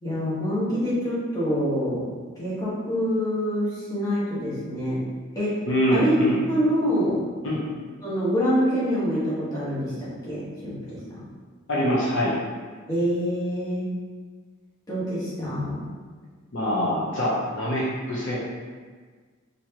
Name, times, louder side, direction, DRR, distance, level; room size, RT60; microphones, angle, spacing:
voice 1, 0.0-2.0 2.4-5.0 5.3-5.6 5.9-6.1 6.5-7.2 8.0-11.2 12.9-14.0 14.9-15.9, equal, 15° left, -10 dB, 1.2 m, -26 dB
voice 2, 5.6-6.4 7.4-7.6 11.7-12.4 16.5-18.4, equal, 60° left, -6 dB, 0.7 m, -24 dB
4.3 x 2.7 x 2.9 m, 1.5 s
head